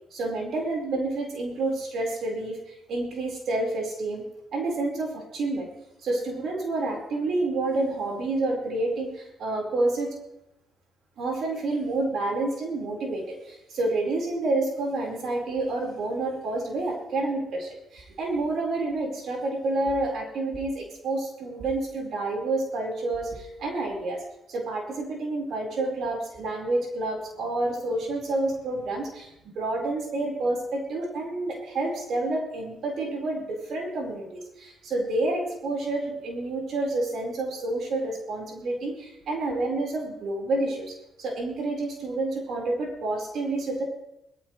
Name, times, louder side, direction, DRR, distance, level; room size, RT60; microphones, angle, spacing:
voice 1, 0.1-4.2 4.5-5.7 6.0-10.2 11.2-24.2 24.5-43.8, right 2 dB, 65° right, -1 dB, 4.6 m, -29 dB
21.5 x 13.5 x 3.2 m, 0.86 s
cardioid pair, 90°, 0 cm